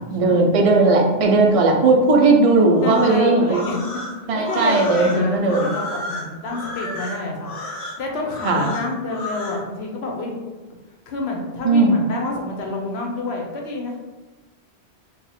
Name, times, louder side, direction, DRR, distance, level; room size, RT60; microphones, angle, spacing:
voice 1, 0.0-3.7 4.3-5.7 8.4-8.7 11.6-12.0, right 3 dB, 50° right, 1 dB, 0.4 m, -17 dB
sound 1, 2.7-9.6, left 1 dB, 40° left, 0.8 m, -32 dB
voice 2, 2.8-3.8 4.3-7.5 8.0-10.4 11.1-14.0, left 2 dB, 75° left, 0 dB, 0.9 m, -28 dB
2.7 x 2.4 x 4.0 m, 1.2 s
omnidirectional pair, 1.1 m